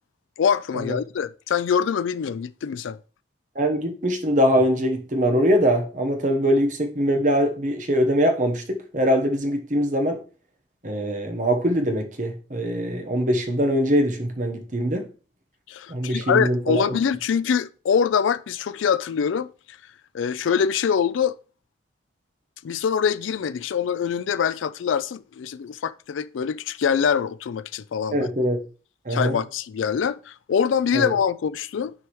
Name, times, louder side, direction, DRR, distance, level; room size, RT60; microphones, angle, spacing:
voice 1, 0.4-3.0 14.8-14.9 15.7-19.8 20.1-21.4 22.6-28.3 29.1-31.9, left 7 dB, 85° left, 0.4 m, -24 dB
voice 2, 3.5-10.2 10.8-15.1 15.9-17.0 28.1-28.6 29.1-29.4 30.9-31.1, equal, 40° right, 1.1 m, -22 dB
9.8 x 4.7 x 3.1 m
head